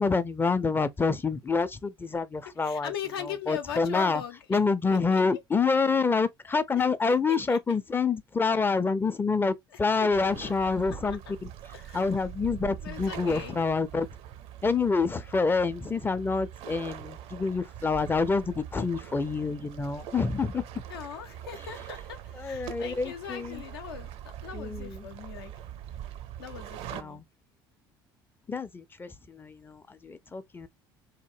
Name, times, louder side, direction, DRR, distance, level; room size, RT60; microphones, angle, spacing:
voice 1, 0.0-2.9 3.2-4.2 4.5-11.5 11.9-14.1 14.6-20.6 22.3-23.6 24.5-25.1 26.9-27.2 28.5-30.7, left 4 dB, 15° left, 0.4 m, -27 dB
voice 2, 2.6-4.6 4.9-5.2 6.7-7.6 9.7-11.2 11.7-12.1 12.8-13.6 20.9-25.5 26.4-27.2, left 8 dB, 80° left, 0.6 m, -40 dB
sound 1, 10.1-27.0, right 10 dB, 55° right, 0.5 m, -43 dB
2.8 x 2.1 x 3.0 m
hypercardioid pair, 65°, 12 cm